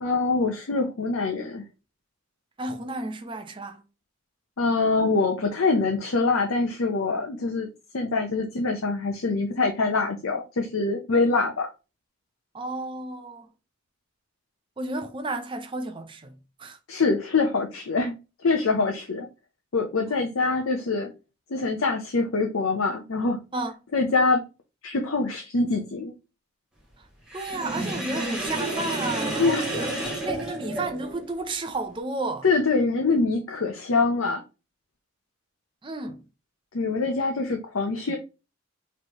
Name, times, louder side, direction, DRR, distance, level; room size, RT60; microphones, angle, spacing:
voice 1, 0.0-1.6 4.6-7.7 7.9-11.7 16.9-18.1 18.4-19.3 19.7-21.1 21.5-23.4 23.9-24.4 24.8-26.1 29.4-29.7 32.4-34.4 36.7-38.2, left 3 dB, 75° left, 0.6 m, -24 dB
voice 2, 2.6-3.8 12.5-13.5 14.8-16.8 20.4-20.5 23.5-23.8 27.0-27.1 27.3-30.0 30.2-32.5 35.8-36.2, right 2 dB, 25° right, 0.5 m, -32 dB
Sink (filling or washing), 27.3-31.2, right 1 dB, 5° right, 1.2 m, -30 dB
4.3 x 3.2 x 3.0 m
head